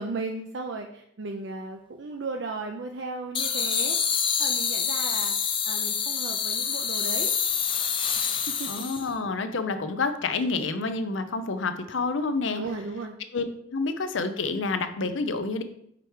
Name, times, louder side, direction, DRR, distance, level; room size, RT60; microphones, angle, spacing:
voice 1, 0.0-5.3 5.7-7.3 8.5-8.8 12.5-13.2, right 3 dB, 65° right, 3 dB, 0.5 m, -35 dB
sound 1, 3.3-9.1, left 7 dB, 25° left, 0.5 m, -27 dB
voice 2, 8.7-12.6 13.3-13.4 13.7-15.6, left 3 dB, 80° left, 9 dB, 0.6 m, -28 dB
4.9 x 4.5 x 4.7 m, 0.71 s
head